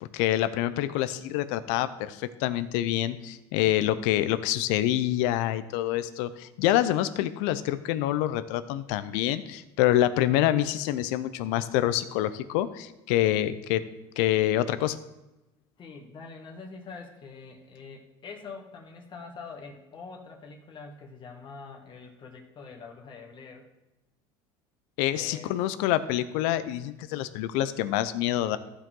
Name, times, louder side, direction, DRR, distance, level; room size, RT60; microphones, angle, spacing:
voice 1, 0.0-13.8 14.2-15.0 25.0-28.6, left 13 dB, 75° left, 13 dB, 0.7 m, -26 dB
voice 2, 15.8-23.7 25.1-25.5, left 4 dB, 35° left, 1 dB, 1.9 m, -44 dB
14.5 x 5.0 x 3.8 m, 0.99 s
supercardioid pair, 105°, 13 cm